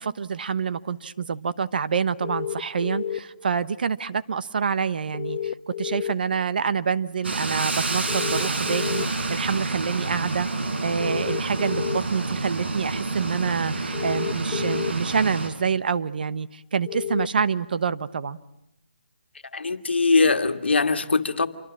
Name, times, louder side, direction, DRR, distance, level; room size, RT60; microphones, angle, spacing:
voice 1, 0.0-10.5 10.8-18.4, right 6 dB, 55° right, 1.1 m, -27 dB
sound 1, 2.2-3.2 5.1-6.1 8.1-9.1 11.0-12.0 13.9-14.9 16.9-17.3, left 8 dB, 30° left, 1.2 m, -30 dB
sound 2, 7.2-15.5, right 3 dB, 75° right, 4.6 m, -28 dB
voice 2, 19.5-21.5, left 4 dB, 75° left, 1.9 m, -21 dB
27.5 x 23.5 x 7.4 m
hypercardioid pair, 160°, 6 cm